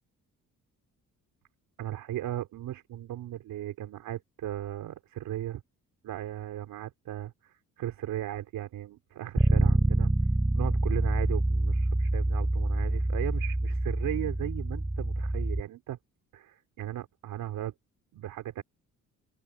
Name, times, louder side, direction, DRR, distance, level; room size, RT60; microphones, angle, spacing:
voice 1, 1.8-5.6 6.0-10.1 10.6-16.0 16.3-17.7 18.1-18.6, right 13 dB, 80° right, 3.8 m, -37 dB
Bass guitar, 9.4-15.6, right 1 dB, 10° right, 5.5 m, -26 dB
open air
cardioid pair, 95°, 34 cm